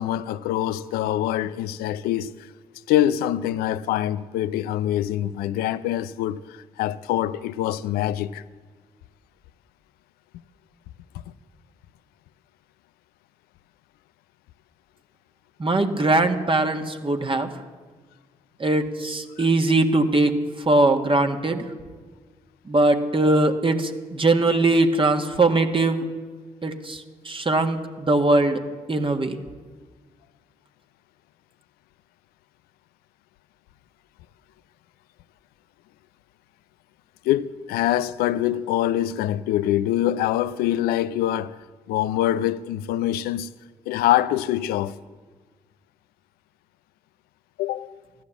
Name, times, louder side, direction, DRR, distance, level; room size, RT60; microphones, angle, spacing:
voice 1, 0.0-2.3 2.9-8.4 19.4-19.5 37.2-43.5 43.9-45.0 47.6-47.9, left 12 dB, 85° left, 0.5 m, -24 dB
voice 2, 15.6-17.5 18.6-21.6 22.7-26.1 26.6-28.6 28.9-29.4, right 2 dB, 35° right, 1.7 m, -21 dB
15.0 x 11.5 x 8.3 m
hypercardioid pair, 40°, 15 cm